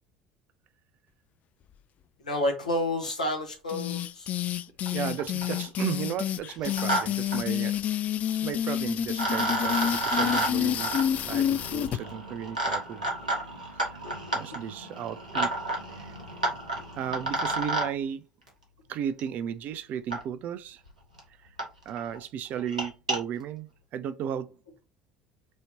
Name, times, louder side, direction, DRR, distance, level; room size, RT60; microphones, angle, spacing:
voice 1, 2.2-4.3, left 1 dB, 85° left, 1.3 m, -29 dB
sound 1, 3.7-12.0, left 10 dB, 40° left, 0.3 m, -29 dB
sound 2, 4.8-4.9 5.2-5.6 6.5-7.0 7.3-7.4 8.7-8.8 9.2-17.9 19.2-19.3 20.1-20.2 20.9-21.0 21.2-21.3 21.6-21.7 22.0-22.2 22.6-23.2, right 2 dB, 85° right, 1.3 m, -31 dB
voice 2, 4.9-7.8 8.3-11.0 11.3-13.1 13.4-14.0 14.3-15.5 15.9-16.1 17.0-18.3 18.9-20.8 21.9-24.5, right 9 dB, 50° right, 0.5 m, -35 dB
6.2 x 2.9 x 2.8 m
figure-of-eight pair, 65°, 4 cm